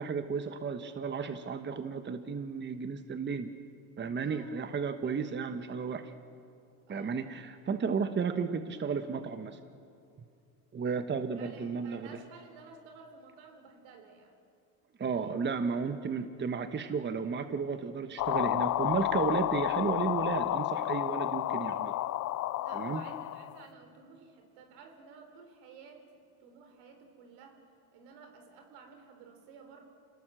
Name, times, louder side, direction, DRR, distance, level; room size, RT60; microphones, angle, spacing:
voice 1, 0.0-3.5 4.0-6.1 6.9-9.6 10.7-12.1 15.0-21.9 22.7-23.0, right 5 dB, 25° right, 9 dB, 1.1 m, -33 dB
voice 2, 4.2-4.5 5.0-5.4 6.9-7.2 11.3-14.4 22.5-26.1 26.4-27.6 27.9-29.8, right 5 dB, 75° right, 5 dB, 4.2 m, -53 dB
sound 1, 18.2-23.6, left 15 dB, 40° left, 0.5 m, -31 dB
28.0 x 19.0 x 7.6 m, 2.5 s
supercardioid pair, 100°, 43 cm